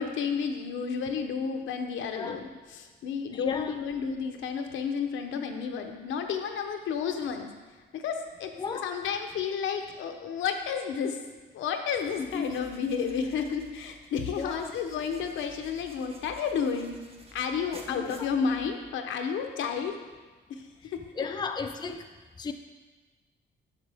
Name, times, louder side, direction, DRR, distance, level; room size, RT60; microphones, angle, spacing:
voice 1, 0.0-7.5 7.9-11.2 11.5-16.9 17.3-20.0 20.5-21.0, left 6 dB, 75° left, 5 dB, 0.8 m, -31 dB
voice 2, 3.3-3.7 8.6-8.9 12.3-12.5 14.4-14.7 17.9-18.1 21.2-22.1 22.4-22.5, left 5 dB, 20° left, 6 dB, 0.5 m, -34 dB
sound 1, 12.0-19.0, right 1 dB, 30° right, 1.0 m, -52 dB
7.6 x 6.5 x 3.5 m, 1.3 s
cardioid pair, 90°, 20 cm